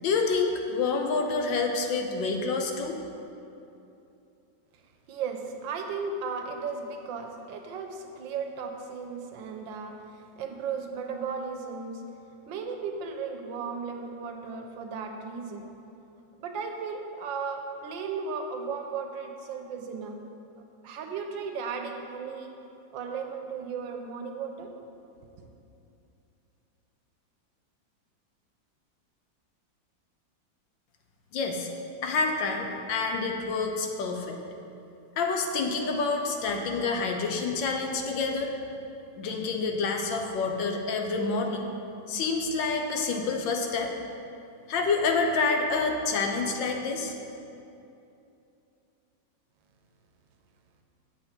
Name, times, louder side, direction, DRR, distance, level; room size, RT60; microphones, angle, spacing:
voice 1, 0.0-3.0 31.3-31.7 32.0-34.4 35.2-38.5 39.2-41.7 42.1-43.9 44.7-47.2, left 4 dB, 75° left, 3 dB, 1.4 m, -28 dB
voice 2, 5.1-12.0 12.5-15.7 16.4-20.2 20.8-22.5 22.9-24.7 25.2-25.5, right 5 dB, 75° right, 4 dB, 1.4 m, -35 dB
7.7 x 7.3 x 4.3 m, 2.8 s
omnidirectional pair, 2.1 m